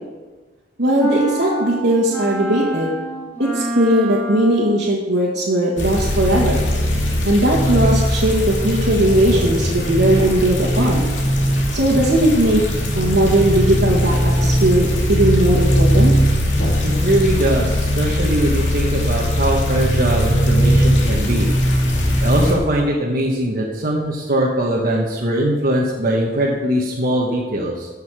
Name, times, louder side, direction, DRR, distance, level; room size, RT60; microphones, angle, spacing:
voice 1, 0.8-2.9 3.4-6.6 7.2-11.0 11.7-12.6 12.9-16.1, right 1 dB, 75° right, -5 dB, 1.9 m, -18 dB
sound 1, 1.0-4.9, right 1 dB, 10° left, 3.2 m, -27 dB
sound 2, 5.8-22.5, equal, 85° left, 2.5 m, -19 dB
voice 2, 16.8-21.5 22.2-27.9, right 1 dB, 50° right, -3 dB, 1.4 m, -21 dB
14.0 x 6.7 x 5.0 m, 1.3 s
head